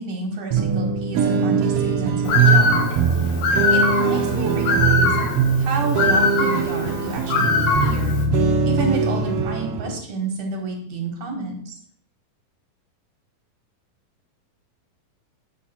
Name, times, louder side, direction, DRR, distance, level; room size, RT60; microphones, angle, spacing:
voice 1, 0.0-2.9 3.3-3.4 3.7-5.2 5.6-11.8, right 4 dB, 55° right, 1 dB, 2.3 m, -30 dB
sound 1, 0.5-10.0, right 5 dB, 80° right, 1.3 m, -21 dB
Bird, 2.2-8.2, left 4 dB, 80° left, 2.9 m, -22 dB
8.6 x 6.6 x 4.3 m, 0.65 s
omnidirectional pair, 4.0 m